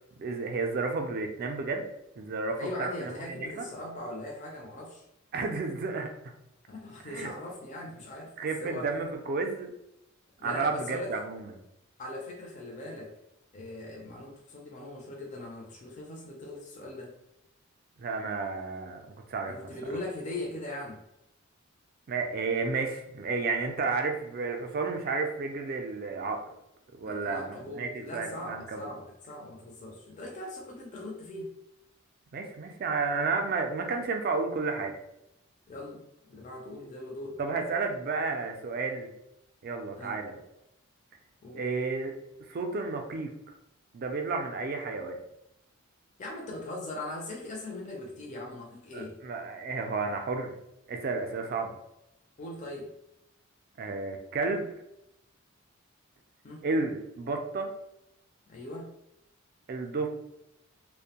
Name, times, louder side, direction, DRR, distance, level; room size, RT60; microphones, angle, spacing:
voice 1, 0.2-1.9 2.2-3.7 5.3-6.3 7.1-7.3 8.4-9.7 10.4-11.5 18.0-19.5 22.1-26.4 27.0-28.8 32.3-35.0 37.4-39.1 39.6-40.4 41.6-42.1 42.5-43.3 43.9-45.2 48.9-50.6 50.9-51.8 53.8-54.7 56.6-57.7 59.7-60.1, right 4 dB, 45° right, 4 dB, 0.3 m, -32 dB
voice 2, 2.6-5.0 6.7-8.3 8.6-8.9 10.4-11.2 12.0-13.1 13.5-17.1 19.5-21.0 27.0-31.5 35.7-37.4 40.0-40.2 41.4-41.6 46.2-49.2 52.4-52.9 56.4-56.7 58.5-58.9, left 1 dB, 35° left, 0 dB, 0.4 m, -40 dB
2.5 x 2.1 x 2.8 m, 0.86 s
head